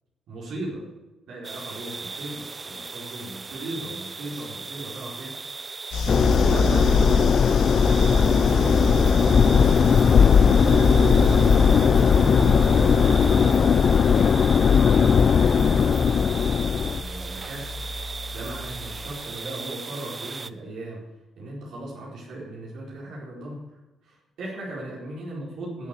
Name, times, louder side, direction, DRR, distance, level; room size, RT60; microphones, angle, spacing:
voice 1, 0.3-0.8 1.3-5.4 6.5-6.9 7.4-15.7 16.2-17.8 18.3-21.0 21.4-23.6 24.0-25.9, right 1 dB, 70° right, -4 dB, 4.4 m, -38 dB
sound 1, 1.4-20.5, right 4 dB, 30° right, 0.6 m, -37 dB
sound 2, 5.9-19.1, left 1 dB, 85° left, 3.0 m, -28 dB
sound 3, 6.1-17.0, left 6 dB, 50° left, 0.4 m, -18 dB
16.5 x 7.0 x 6.8 m, 1.1 s
cardioid pair, 90°, 0 cm